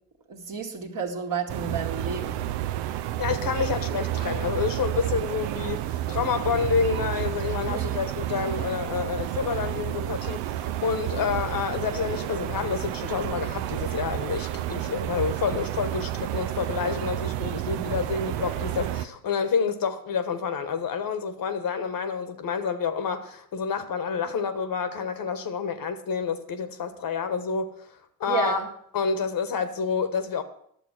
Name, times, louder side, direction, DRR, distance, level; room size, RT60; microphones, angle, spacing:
voice 1, 0.3-2.5 7.6-8.0 28.3-28.7, right 5 dB, 45° right, 1.9 m, -31 dB
sound 1, 1.5-19.1, right 13 dB, 70° right, 0.7 m, -30 dB
voice 2, 3.2-27.9 28.2-28.6 28.9-30.4, left 6 dB, 50° left, 1.3 m, -28 dB
11.0 x 7.2 x 6.0 m
hypercardioid pair, 55°, 45 cm